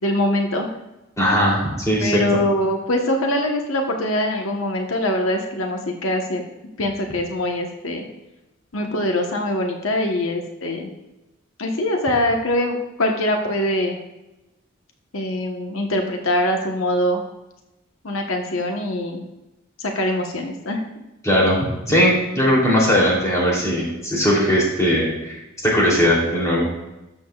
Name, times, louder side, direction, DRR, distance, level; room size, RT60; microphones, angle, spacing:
voice 1, 0.0-0.7 2.0-6.4 6.8-8.0 8.7-10.9 11.6-14.0 15.1-17.2 18.0-19.3 19.8-20.8, left 1 dB, 85° left, 2 dB, 1.1 m, -23 dB
voice 2, 1.2-2.2 21.2-21.6 21.9-26.7, equal, 15° left, -4 dB, 3.0 m, -19 dB
13.0 x 7.7 x 2.4 m, 0.97 s
head